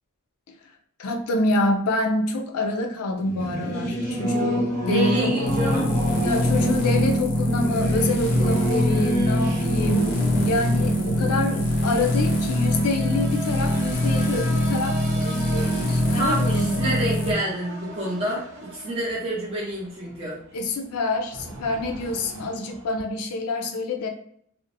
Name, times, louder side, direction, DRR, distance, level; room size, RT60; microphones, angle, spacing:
voice 1, 1.0-5.3 6.2-10.1 10.4-16.8 20.5-24.1, left 2 dB, 85° left, 3 dB, 0.4 m, -26 dB
Singing / Musical instrument, 3.2-13.3, equal, 10° left, 0.8 m, -28 dB
sound 1, 3.2-23.0, right 2 dB, 65° right, 0.7 m, -41 dB
voice 2, 4.8-5.9 15.7-15.9 16.1-20.4, right 1 dB, 25° right, -7 dB, 0.6 m, -28 dB
sound 2, 5.4-17.3, left 1 dB, 40° left, 0.6 m, -23 dB
2.6 x 2.0 x 2.5 m, 0.67 s
head